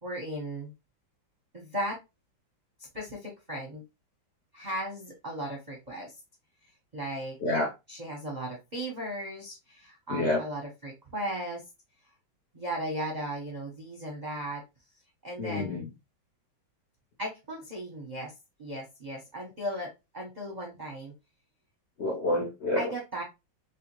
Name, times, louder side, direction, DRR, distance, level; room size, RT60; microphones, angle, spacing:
voice 1, 0.0-0.7 1.5-2.0 2.9-3.8 4.5-6.1 6.9-7.4 7.9-11.6 12.5-14.6 15.2-15.8 17.2-18.3 18.6-21.1 22.8-23.2, right 1 dB, 35° right, -1 dB, 0.7 m, -36 dB
voice 2, 7.4-7.7 10.1-10.4 15.4-15.9 22.0-22.9, left 2 dB, 50° left, -2 dB, 0.9 m, -28 dB
3.4 x 3.2 x 3.0 m, 0.24 s
omnidirectional pair, 2.0 m